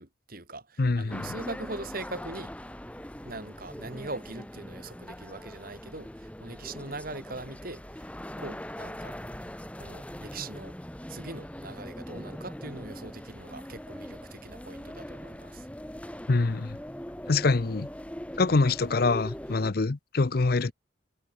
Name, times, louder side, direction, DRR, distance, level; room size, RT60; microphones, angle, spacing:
voice 1, 0.0-2.5 3.2-9.1 9.8-10.7 11.1-15.7 20.6-20.7, right 2 dB, 50° right, 3.4 m, -41 dB
voice 2, 0.8-1.3 16.3-16.8 17.3-17.9 18.4-20.7, left 3 dB, 50° left, 0.6 m, -25 dB
sound 1, 1.1-19.7, equal, 5° left, 1.5 m, -41 dB
head